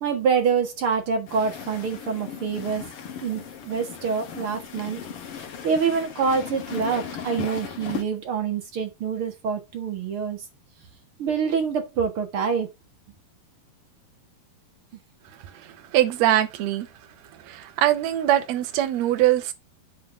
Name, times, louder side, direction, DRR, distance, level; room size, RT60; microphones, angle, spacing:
voice 1, 0.0-2.9 3.2-5.0 5.6-10.4 11.2-12.7, right 6 dB, 55° right, 1.5 m, -26 dB
sound 1, 1.3-8.0, left 7 dB, 60° left, 1.5 m, -37 dB
voice 2, 15.5-16.9 17.4-19.5, right 13 dB, 75° right, 1.6 m, -22 dB
7.6 x 3.7 x 6.1 m
omnidirectional pair, 4.6 m